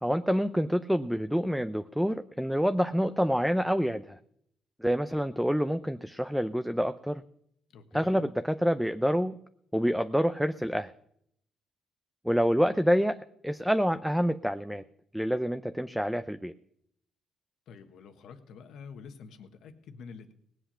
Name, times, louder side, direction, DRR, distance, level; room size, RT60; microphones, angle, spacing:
voice 1, 0.0-4.2 4.8-7.2 7.9-9.4 9.7-10.9 12.2-14.8 15.1-16.5, equal, ahead, 10 dB, 0.5 m, -27 dB
voice 2, 7.7-8.2 17.7-20.3, left 5 dB, 75° left, 7 dB, 1.4 m, -47 dB
18.5 x 7.8 x 5.7 m, 0.69 s
cardioid pair, 90°, 0 cm